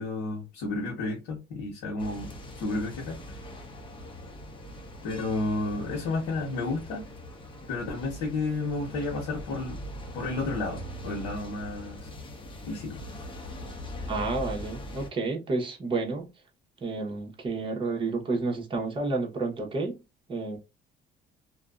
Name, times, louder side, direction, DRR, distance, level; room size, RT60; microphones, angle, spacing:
voice 1, 0.0-2.3 2.6-3.2 5.0-7.1 7.7-9.8 10.1-12.1 12.7-13.0, left 3 dB, 85° left, 0.9 m, -31 dB
sound 1, 2.0-15.1, equal, 30° left, 0.8 m, -41 dB
voice 2, 14.1-16.3 16.8-20.0 20.3-20.6, right 3 dB, 30° right, 1.0 m, -30 dB
2.6 x 2.2 x 2.3 m
cardioid pair, 110°, 17 cm